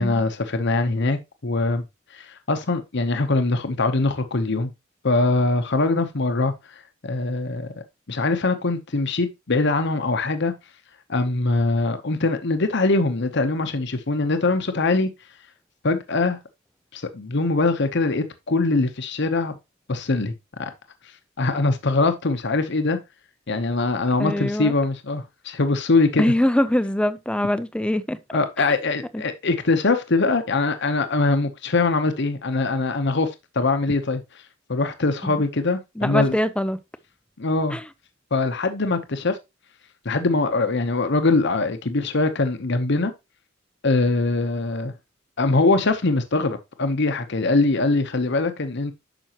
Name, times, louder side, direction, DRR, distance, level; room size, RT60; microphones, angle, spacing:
voice 1, 0.0-1.8 2.1-4.7 5.0-6.5 7.0-7.7 8.1-10.5 11.1-15.1 15.8-16.4 16.9-19.6 19.9-20.3 20.6-20.7 21.4-23.0 23.5-26.3 28.3-34.2 34.7-36.4 37.4-37.8 38.3-39.4 40.0-43.1 43.8-44.9 45.4-48.9, left 3 dB, 60° left, 0.9 m, -22 dB
voice 2, 24.2-24.7 26.2-28.2 29.1-29.2 35.2-35.4 36.0-36.8 37.7-37.8, left 1 dB, 5° left, 0.5 m, -23 dB
9.0 x 6.2 x 3.0 m
head